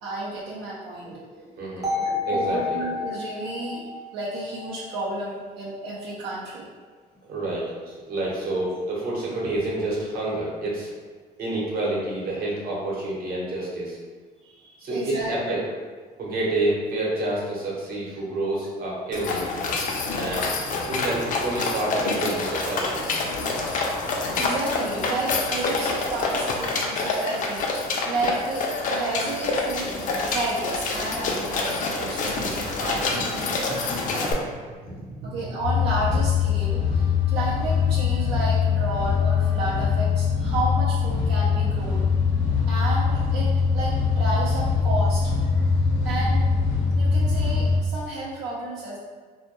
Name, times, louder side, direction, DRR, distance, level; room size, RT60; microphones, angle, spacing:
voice 1, 0.0-1.2 2.0-6.7 14.4-15.4 24.4-34.4 35.2-42.1 42.7-45.2 46.0-46.4 47.0-49.0, right 2 dB, 90° right, -7 dB, 0.5 m, -32 dB
voice 2, 1.0-2.8 7.3-10.9 11.4-14.0 14.8-15.6 16.2-19.5 20.1-20.5 20.9-23.0 34.2-34.3 34.8-35.3, right 2 dB, 60° right, -4 dB, 0.8 m, -29 dB
sound 1, 1.8-5.8, left 4 dB, 20° right, 0.6 m, -31 dB
sound 2, 19.1-34.3, left 3 dB, 50° left, 0.4 m, -27 dB
sound 3, 35.6-47.8, left 5 dB, 75° left, 0.7 m, -22 dB
2.1 x 2.1 x 2.8 m, 1.5 s
cardioid pair, 110°, 17 cm